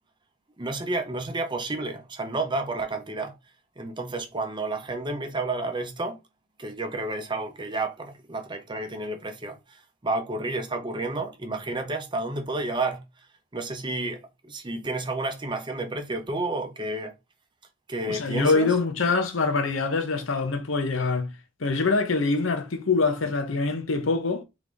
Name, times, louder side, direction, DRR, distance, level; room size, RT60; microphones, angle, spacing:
voice 1, 0.6-3.3 3.8-6.2 6.6-9.8 10.0-13.0 13.5-17.1 17.9-18.7, right 2 dB, 25° right, 0.7 m, -31 dB
voice 2, 18.1-21.3 21.6-24.4, left 3 dB, 85° left, 0.8 m, -24 dB
3.8 x 3.5 x 3.3 m
head